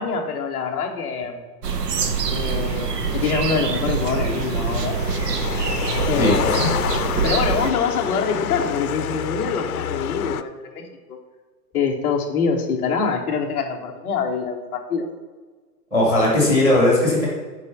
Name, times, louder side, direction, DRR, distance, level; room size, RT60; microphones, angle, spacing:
voice 1, 0.0-1.4 2.2-5.0 6.1-6.6 7.2-10.8 11.1-11.2 11.7-15.1, left 5 dB, 10° left, -5 dB, 0.7 m, -25 dB
sound 1, 1.6-7.7, right 6 dB, 75° right, 1.2 m, -25 dB
sound 2, 2.3-10.4, left 10 dB, 60° left, 0.6 m, -29 dB
voice 2, 6.1-6.7 15.9-17.3, left 1 dB, 5° right, -3 dB, 2.8 m, -18 dB
11.5 x 4.8 x 5.7 m, 1.4 s
hypercardioid pair, 155°, 48 cm